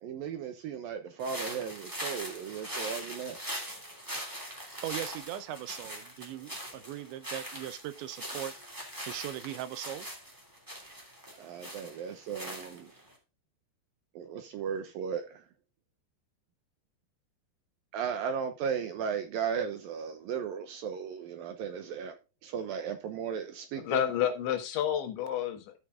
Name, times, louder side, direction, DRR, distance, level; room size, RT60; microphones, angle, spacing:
voice 1, 0.0-3.4 11.4-12.9 14.2-15.4 17.9-22.2 22.4-24.1, right 7 dB, 70° right, 2.3 m, -36 dB
sound 1, 1.2-13.1, equal, 5° right, 1.8 m, -41 dB
voice 2, 4.8-8.5 9.0-10.1, right 13 dB, 90° right, 3.2 m, -39 dB
voice 3, 23.8-25.8, left 10 dB, 85° left, 3.8 m, -30 dB
13.5 x 5.9 x 3.7 m
omnidirectional pair, 5.1 m